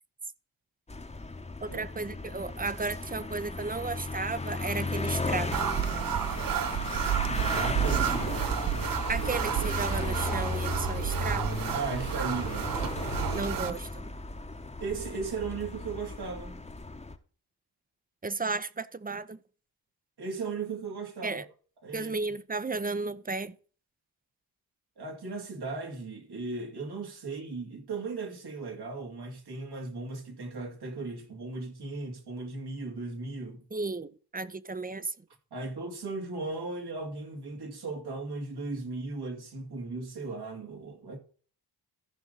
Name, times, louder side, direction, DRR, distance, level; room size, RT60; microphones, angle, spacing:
sound 1, 0.9-17.2, left 3 dB, 15° left, 1.0 m, -35 dB
voice 1, 1.6-5.5 9.1-11.6 13.3-14.0 18.2-19.4 21.2-21.4 21.9-23.5 33.7-35.1, right 3 dB, 20° right, 0.7 m, -34 dB
sound 2, 5.5-13.7, right 10 dB, 60° right, 0.7 m, -31 dB
voice 2, 7.2-8.5 11.7-12.7 14.8-16.6 20.2-21.4 21.8-22.1 25.0-33.6 35.5-41.2, right 3 dB, 75° right, 2.6 m, -37 dB
14.5 x 5.4 x 4.0 m
cardioid pair, 65°, 39 cm